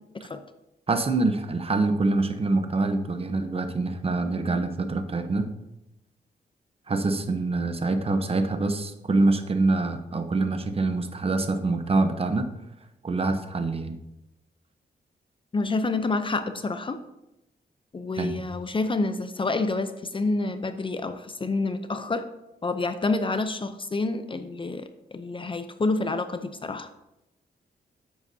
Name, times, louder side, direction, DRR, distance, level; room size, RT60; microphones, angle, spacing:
voice 1, 0.9-5.5 6.9-12.5 13.0-14.0 18.2-18.4, right 3 dB, 35° right, 8 dB, 0.9 m, -25 dB
voice 2, 15.5-17.0 17.9-22.2 22.6-26.9, left 3 dB, 30° left, 9 dB, 0.6 m, -28 dB
9.7 x 8.0 x 2.8 m, 0.92 s
cardioid pair, 90°, 17 cm